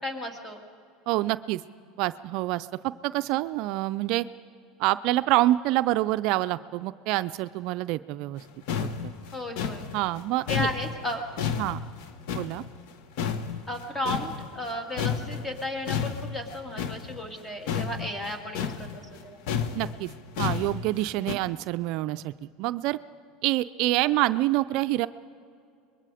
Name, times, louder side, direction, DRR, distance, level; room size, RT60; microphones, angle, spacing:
voice 1, 0.0-0.6 9.3-9.8 10.5-11.2 13.7-19.4, left 1 dB, 15° left, 4 dB, 2.3 m, -34 dB
voice 2, 1.1-1.6 2.0-4.3 4.8-8.4 8.8-9.1 9.9-10.7 11.6-11.8 12.3-12.6 19.7-20.1 20.4-23.0 23.4-25.1, right 17 dB, 60° right, 13 dB, 0.4 m, -27 dB
sound 1, 8.4-8.5 8.7-12.9 13.2-14.7 15.0-21.4, left 7 dB, 70° left, 1.2 m, -31 dB
24.5 x 21.5 x 5.0 m, 2.4 s
supercardioid pair, 125°, 0 cm